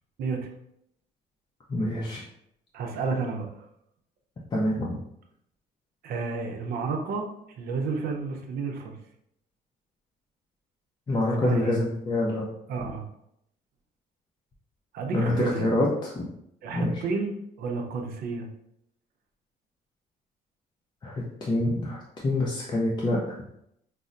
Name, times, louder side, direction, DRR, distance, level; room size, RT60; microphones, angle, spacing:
voice 1, 0.2-0.5 2.7-3.5 6.0-7.3 7.6-9.0 11.4-11.8 12.7-13.1 14.9-15.7 16.6-18.5, right 4 dB, 65° right, 2 dB, 0.6 m, -31 dB
voice 2, 1.7-2.2 4.5-5.0 11.1-12.5 15.1-16.3 16.7-16.9 21.0-23.2, left 1 dB, 25° left, -4 dB, 0.6 m, -26 dB
5.3 x 2.0 x 2.5 m, 0.76 s
cardioid pair, 110°, 17 cm